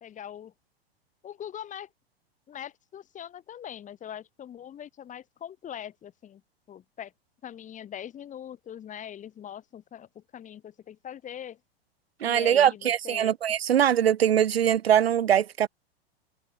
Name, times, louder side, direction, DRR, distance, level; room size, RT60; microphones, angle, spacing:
voice 1, 0.0-0.5 1.2-1.9 2.5-6.4 6.7-7.1 7.4-11.6 12.2-13.3, left 10 dB, 25° left, 1.7 m, -42 dB
voice 2, 12.2-15.7, right 10 dB, 80° right, 0.9 m, -22 dB
hypercardioid pair, 95°, 31 cm